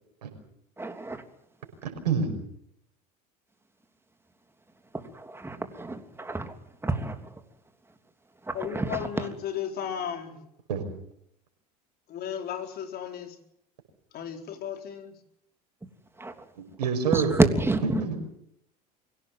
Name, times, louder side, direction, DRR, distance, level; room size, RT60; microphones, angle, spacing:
voice 1, 0.8-1.2 4.9-6.5 6.8-7.4 8.4-9.3 15.8-15.9 16.2-16.5 17.1-17.8, right 2 dB, 10° right, 7 dB, 3.2 m, -28 dB
voice 2, 1.8-2.3 10.7-10.8 16.5-17.4 17.8-18.2, right 6 dB, 85° right, 4 dB, 5.9 m, -27 dB
voice 3, 8.5-10.5 12.1-13.4 14.1-15.2, left 9 dB, 50° left, 5 dB, 4.6 m, -35 dB
24.0 x 17.0 x 7.7 m, 0.73 s
hypercardioid pair, 80°, 21 cm